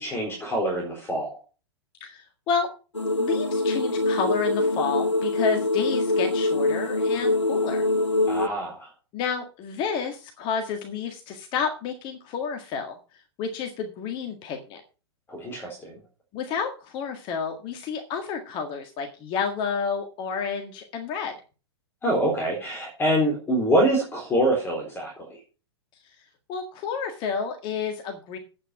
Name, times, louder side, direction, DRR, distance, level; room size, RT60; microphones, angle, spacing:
voice 1, 0.0-1.4 8.3-8.9 15.3-15.9 22.0-25.4, right 1 dB, 15° left, 0 dB, 4.2 m, -25 dB
voice 2, 2.0-2.7 3.2-7.8 9.1-14.8 15.5-15.7 16.3-21.3 26.0-26.2 26.5-28.4, left 6 dB, 35° left, 5 dB, 1.8 m, -30 dB
sound 1, 2.9-8.5, left 2 dB, 85° left, 0.8 m, -24 dB
10.0 x 8.6 x 5.8 m, 0.35 s
figure-of-eight pair, 100°, 15 cm